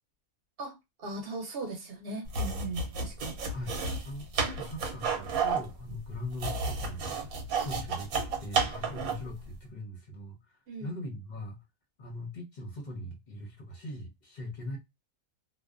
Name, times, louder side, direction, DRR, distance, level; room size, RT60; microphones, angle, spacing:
voice 1, 0.6-3.4 10.7-10.9, right 2 dB, 50° right, 0.9 m, -39 dB
sound 1, 2.3-9.3, right 4 dB, 90° right, 1.2 m, -32 dB
voice 2, 4.0-7.2 7.6-11.6 12.0-14.8, left 1 dB, 45° left, 0.6 m, -41 dB
2.6 x 2.1 x 2.4 m
omnidirectional pair, 1.5 m